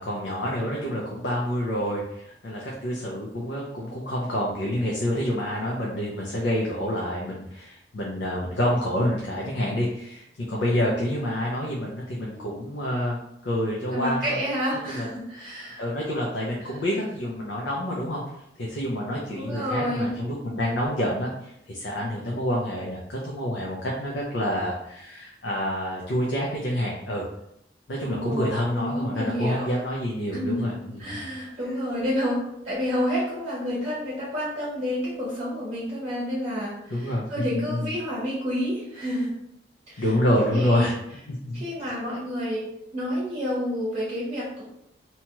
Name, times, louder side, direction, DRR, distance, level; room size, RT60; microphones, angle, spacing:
voice 1, 0.0-13.2 13.4-14.4 14.9-15.1 15.8-18.2 18.6-27.2 27.9-31.3 36.9-37.9 40.0-40.9 41.5-41.6, equal, 85° left, -3 dB, 0.6 m, -27 dB
voice 2, 13.9-15.8 16.6-16.8 19.3-20.1 28.0-29.7 30.3-39.3 39.9-40.1 40.5-40.9 41.5-44.6, equal, 35° right, -8 dB, 0.8 m, -29 dB
2.8 x 2.3 x 2.9 m, 0.79 s
head